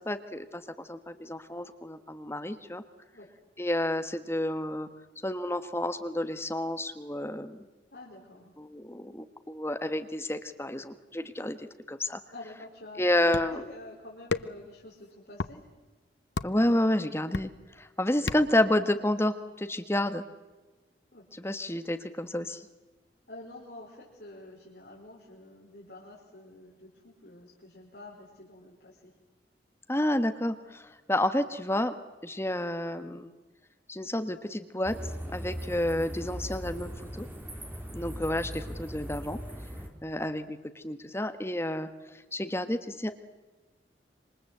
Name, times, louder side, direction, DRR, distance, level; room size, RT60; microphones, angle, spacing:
voice 1, 0.0-2.8 3.6-4.9 5.2-7.6 8.6-11.6 11.9-12.2 13.0-13.7 16.4-17.5 17.8-20.2 21.4-22.7 29.9-31.9 32.2-33.3 33.9-34.9 35.3-37.2 37.9-39.4 40.0-41.9 42.3-43.1, left 1 dB, 15° left, 9 dB, 1.3 m, -30 dB
voice 2, 7.9-8.5 12.3-13.1 13.4-15.7 21.1-21.3 23.3-29.1, left 1 dB, 60° left, -4 dB, 5.3 m, -48 dB
sound 1, 13.3-13.7 14.3-14.7 15.3-15.6 16.4-16.7 17.3-17.7 18.3-18.7, left 4 dB, 85° left, 0.8 m, -33 dB
sound 2, 34.8-39.9, equal, 10° right, 3.5 m, -39 dB
27.0 x 25.0 x 8.0 m, 1.2 s
head